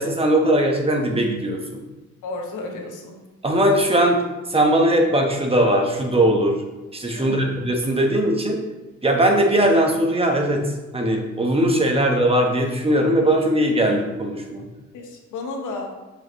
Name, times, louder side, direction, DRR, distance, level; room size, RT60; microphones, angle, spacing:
voice 1, 0.0-1.8 3.4-4.2 4.5-6.6 6.9-8.6 9.0-14.7, right 1 dB, 20° right, 1 dB, 1.1 m, -19 dB
voice 2, 2.2-3.2 7.2-7.5 12.0-12.1 14.9-15.9, left 3 dB, 85° left, 2 dB, 1.2 m, -32 dB
6.2 x 5.1 x 3.1 m, 1.1 s
cardioid pair, 90°, 30 cm